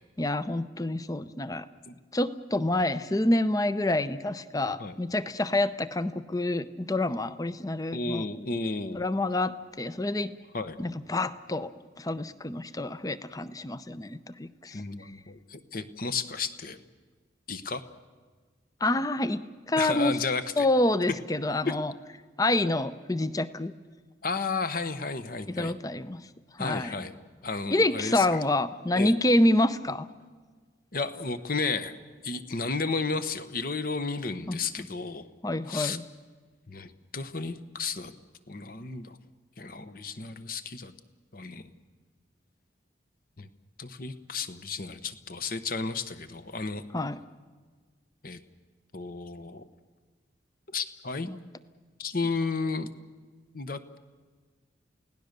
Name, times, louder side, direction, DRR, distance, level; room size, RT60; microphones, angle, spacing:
voice 1, 0.2-1.7 2.1-8.2 8.9-10.3 10.8-11.7 12.0-14.8 18.8-20.2 20.6-21.9 22.4-23.7 25.5-26.3 26.6-27.0 27.7-30.1 34.5-34.9 35.4-36.0 46.9-47.2 51.2-51.4, left 1 dB, 20° left, 14 dB, 0.6 m, -27 dB
voice 2, 7.9-9.1 10.5-10.8 14.7-16.8 17.5-17.8 19.7-20.7 21.7-21.8 24.2-25.8 26.6-27.1 27.4-28.4 29.0-29.1 30.9-31.9 32.2-35.3 35.7-36.0 36.7-38.1 38.5-39.2 39.6-40.9 41.3-41.7 43.4-43.5 43.8-46.8 48.2-48.4 48.9-49.6 50.7-51.3 52.0-52.9 53.5-54.0, left 4 dB, 50° left, 11 dB, 1.0 m, -33 dB
29.0 x 17.5 x 6.7 m, 1.5 s
head